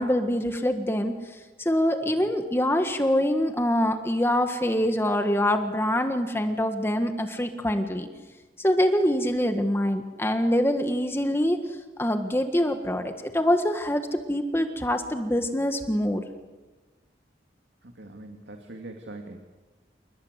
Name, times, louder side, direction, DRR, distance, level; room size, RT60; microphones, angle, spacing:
voice 1, 0.0-8.1 8.6-11.6 12.0-16.2, equal, 15° left, 6 dB, 1.6 m, -25 dB
voice 2, 17.8-19.4, right 2 dB, 85° right, 4 dB, 2.3 m, -43 dB
29.5 x 20.0 x 8.2 m, 1.2 s
head